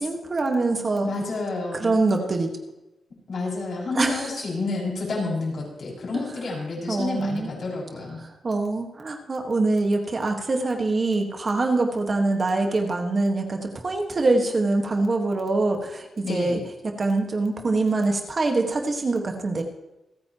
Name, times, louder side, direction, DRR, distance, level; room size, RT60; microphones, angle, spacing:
voice 1, 0.0-1.1 1.7-2.5 3.9-4.4 6.9-7.5 8.2-19.6, right 3 dB, 30° right, 3 dB, 1.6 m, -24 dB
voice 2, 1.0-2.0 3.3-8.2 16.2-16.6, left 3 dB, 55° left, -3 dB, 6.4 m, -30 dB
28.0 x 9.6 x 3.0 m, 0.99 s
wide cardioid pair, 145°, 0 cm